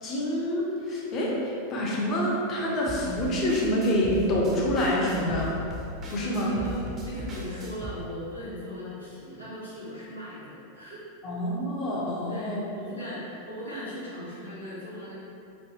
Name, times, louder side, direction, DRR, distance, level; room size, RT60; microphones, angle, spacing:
voice 1, 0.0-5.5 6.1-6.5 11.2-12.6, left 1 dB, 30° left, -4 dB, 0.6 m, -27 dB
sound 1, 2.9-7.9, equal, 25° right, 0.5 m, -38 dB
voice 2, 6.2-11.0 12.3-15.1, equal, 90° left, -11 dB, 1.0 m, -38 dB
3.2 x 2.2 x 2.8 m, 2.7 s
figure-of-eight pair, 90°, 0 cm